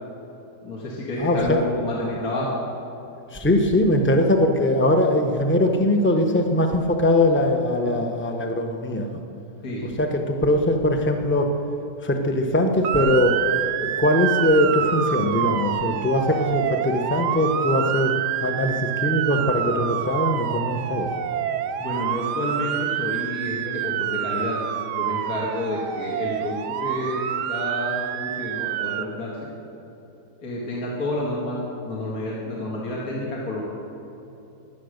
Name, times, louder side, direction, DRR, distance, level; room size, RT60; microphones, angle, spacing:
voice 1, 0.6-2.5 9.6-9.9 21.8-24.6 24.9-27.2 27.5-29.4 30.4-31.6 31.8-33.6, left 1 dB, 60° left, -5 dB, 2.5 m, -29 dB
voice 2, 1.2-1.6 3.3-9.2 10.0-11.5 12.0-13.3 13.8-18.1 18.4-18.7 19.0-21.1, left 1 dB, 10° left, 4 dB, 0.8 m, -21 dB
Motor vehicle (road) / Siren, 12.8-29.1, right 10 dB, 75° right, 1.2 m, -27 dB
16.0 x 11.0 x 6.6 m, 3.0 s
omnidirectional pair, 1.9 m